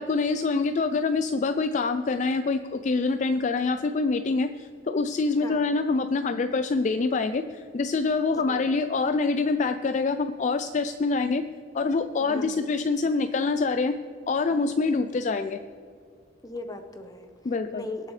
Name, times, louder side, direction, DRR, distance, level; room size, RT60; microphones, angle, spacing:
voice 1, 0.0-11.4 11.7-13.9 14.3-15.6 17.4-17.9, left 3 dB, 40° left, 8 dB, 0.4 m, -25 dB
voice 2, 12.2-12.6 16.4-17.3 17.7-18.1, left 2 dB, 20° left, 6 dB, 0.9 m, -38 dB
23.0 x 7.7 x 3.2 m, 2.2 s
head